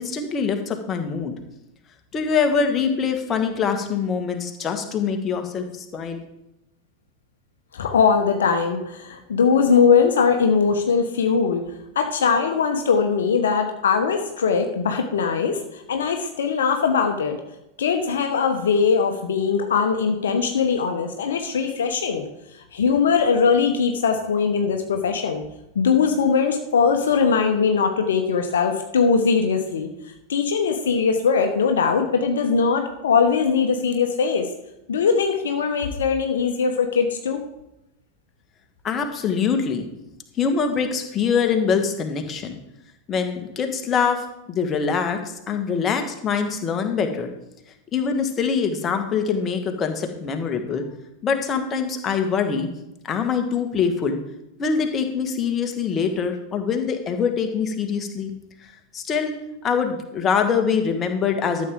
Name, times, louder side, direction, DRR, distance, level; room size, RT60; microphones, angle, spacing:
voice 1, 0.0-1.3 2.1-6.2 38.8-39.9 40.4-42.6 43.1-47.3 47.9-50.8 51.2-52.7 53.0-54.2 54.6-58.3 58.9-59.3 59.6-61.7, left 6 dB, 25° left, 5 dB, 1.6 m, -24 dB
voice 2, 7.7-11.6 11.9-17.4 17.8-22.3 22.7-25.4 25.7-29.9 30.3-34.5 34.9-37.4, left 5 dB, 65° left, 6 dB, 1.0 m, -21 dB
13.0 x 7.6 x 3.7 m, 0.88 s
figure-of-eight pair, 90°, 0 cm